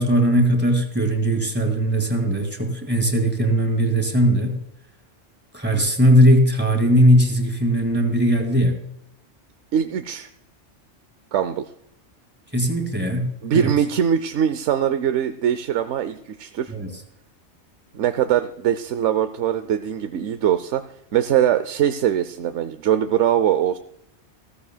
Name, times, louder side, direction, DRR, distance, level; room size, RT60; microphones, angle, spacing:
voice 1, 0.0-4.6 5.5-8.8 12.5-13.7 16.7-16.9, equal, 10° right, 4 dB, 2.2 m, -19 dB
voice 2, 9.7-10.3 11.3-11.7 13.4-16.7 17.9-20.8 21.1-23.8, right 9 dB, 80° right, 10 dB, 1.0 m, -22 dB
15.0 x 15.0 x 2.3 m, 0.77 s
omnidirectional pair, 1.2 m